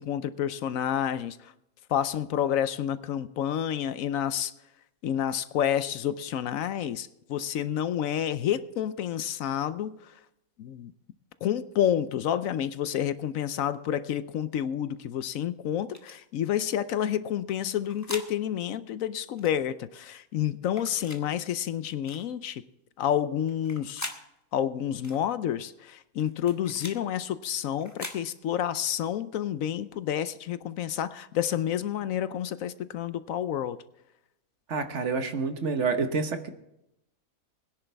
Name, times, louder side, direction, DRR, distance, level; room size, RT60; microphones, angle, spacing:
voice 1, 0.0-1.5 1.9-4.5 5.0-10.1 10.6-10.9 11.4-22.6 23.0-24.1 24.5-33.8, left 10 dB, 75° left, 14 dB, 1.0 m, -29 dB
sound 1, 15.9-16.2 17.5-18.3 19.4-19.6 20.7-21.2 22.1-22.3 23.5-24.2 25.0-25.2 26.2-27.0 27.8-28.2, left 1 dB, 10° left, 1.2 m, -41 dB
voice 2, 34.7-36.5, right 4 dB, 55° right, 7 dB, 1.4 m, -28 dB
21.0 x 10.5 x 3.4 m, 0.84 s
omnidirectional pair, 1.5 m